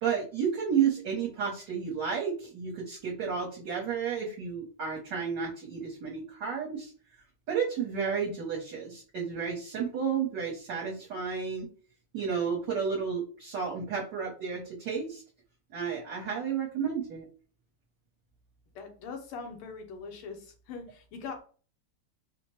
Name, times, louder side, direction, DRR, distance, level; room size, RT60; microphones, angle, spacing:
voice 1, 0.0-6.9 7.5-11.7 12.1-15.2 15.7-17.3, right 6 dB, 60° right, -4 dB, 1.4 m, -32 dB
voice 2, 18.7-21.4, left 5 dB, 80° left, 4 dB, 1.7 m, -41 dB
4.4 x 2.1 x 3.0 m, 0.39 s
omnidirectional pair, 2.4 m